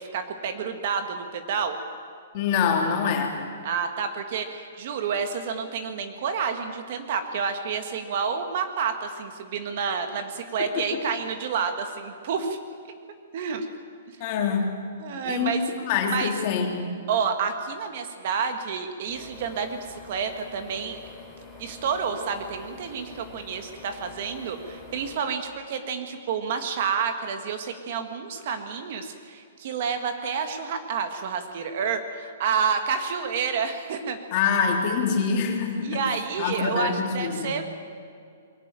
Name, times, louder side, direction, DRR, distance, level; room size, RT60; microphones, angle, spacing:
voice 1, 0.0-1.8 3.6-12.6 13.3-13.7 15.0-15.6 16.1-16.3 17.1-21.0 21.6-34.2 35.8-37.9, right 6 dB, 40° right, 7 dB, 1.8 m, -29 dB
voice 2, 2.3-3.4 10.6-11.0 14.2-14.7 15.2-15.6 15.9-16.9 34.3-36.1 36.4-37.5, left 6 dB, 30° left, 2 dB, 3.2 m, -25 dB
sound 1, 19.1-25.2, left 3 dB, ahead, 3.5 m, -46 dB
22.0 x 18.5 x 9.1 m, 2.3 s
hypercardioid pair, 175°, 0 cm